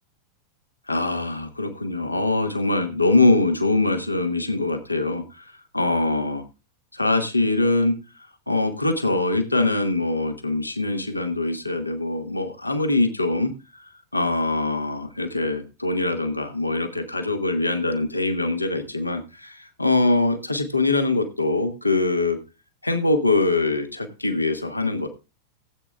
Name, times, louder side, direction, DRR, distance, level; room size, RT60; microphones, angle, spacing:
voice 1, 0.9-6.4 6.9-8.0 8.5-22.4 22.8-25.1, left 2 dB, 85° left, 6 dB, 1.4 m, -23 dB
17.0 x 8.4 x 2.4 m, 0.30 s
figure-of-eight pair, 90°, 0 cm